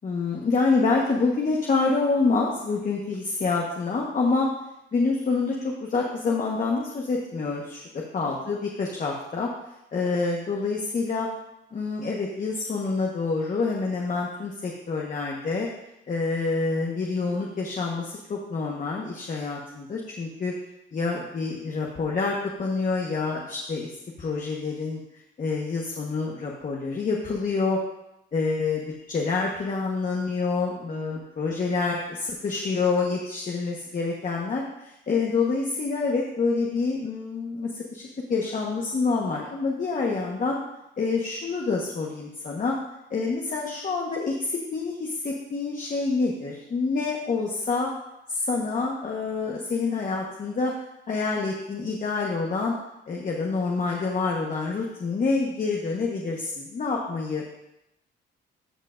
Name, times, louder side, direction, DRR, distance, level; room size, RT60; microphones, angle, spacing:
voice 1, 0.0-4.5 4.9-7.8 8.1-9.5 9.9-11.3 11.7-15.7 16.1-20.5 20.9-23.9 24.2-25.0 25.4-27.8 28.3-40.6 41.0-42.8 43.1-47.9 48.3-50.7 51.1-52.7 53.1-57.5, left 4 dB, 40° left, -1 dB, 1.2 m, -27 dB
13.5 x 5.5 x 2.5 m, 0.86 s
cardioid pair, 90°, 20 cm